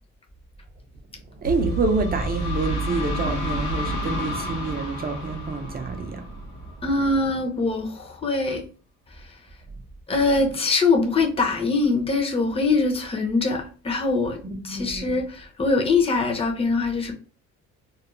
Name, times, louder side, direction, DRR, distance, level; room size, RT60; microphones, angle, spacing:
sound 1, 1.4-7.1, equal, 80° left, 0.9 m, -30 dB
voice 1, 1.4-6.4 14.4-15.1, right 3 dB, 30° right, 0.5 m, -27 dB
voice 2, 6.8-8.6 10.1-14.4 14.6-17.1, left 3 dB, 20° left, 0.6 m, -23 dB
2.4 x 2.0 x 3.0 m
cardioid pair, 90°, 30 cm